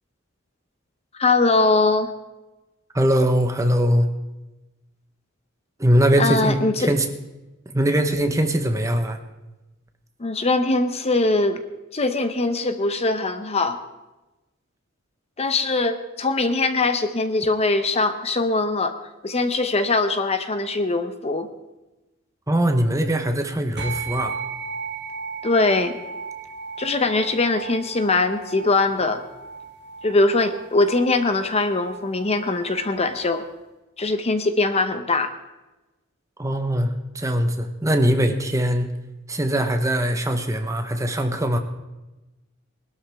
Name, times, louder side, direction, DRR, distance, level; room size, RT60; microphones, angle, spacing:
voice 1, 1.1-2.1 6.2-6.9 10.2-11.6 11.9-13.8 15.4-18.9 19.2-21.5 25.4-26.0 26.8-29.2 30.0-33.5 34.0-35.3, left 3 dB, 30° left, 9 dB, 0.8 m, -21 dB
voice 2, 2.9-4.1 5.8-7.0 7.7-9.2 22.5-24.4 36.4-38.9 39.3-41.6, right 1 dB, 15° right, 6 dB, 1.1 m, -21 dB
sound 1, 23.8-33.5, right 4 dB, 60° right, 1.4 m, -36 dB
20.5 x 12.5 x 3.6 m, 1.0 s
head